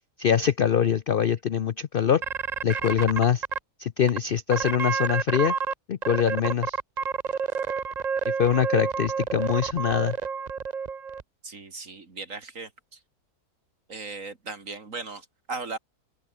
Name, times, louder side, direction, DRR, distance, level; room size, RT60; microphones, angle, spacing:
voice 1, 0.2-2.2 2.6-3.4 3.8-5.5 5.9-6.8 8.3-10.2, left 8 dB, 60° left, 0.6 m, -23 dB
sound 1, 2.2-3.6 4.1-4.2 4.5-5.7 6.0-11.2, right 6 dB, 35° right, 0.7 m, -29 dB
voice 2, 11.4-13.0 13.9-15.8, right 4 dB, 55° right, 3.1 m, -37 dB
open air
omnidirectional pair, 1.6 m